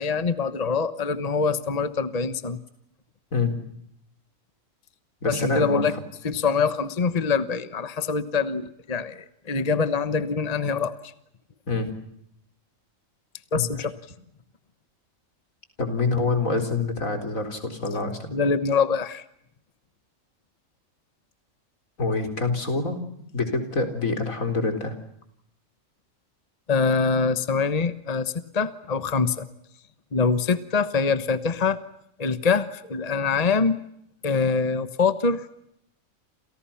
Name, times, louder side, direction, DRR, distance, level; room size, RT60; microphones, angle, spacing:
voice 1, 0.0-2.6 5.3-5.9 6.2-11.1 13.5-13.9 18.3-19.2 26.7-29.5 30.1-31.8 32.2-33.8 34.2-35.5, left 5 dB, 30° left, 12 dB, 1.2 m, -24 dB
voice 2, 5.2-5.9 11.7-11.9 13.5-13.7 15.8-18.2 22.0-23.0 23.3-24.9, left 3 dB, 80° left, 6 dB, 4.6 m, -26 dB
29.5 x 29.0 x 5.8 m, 0.75 s
omnidirectional pair, 1.4 m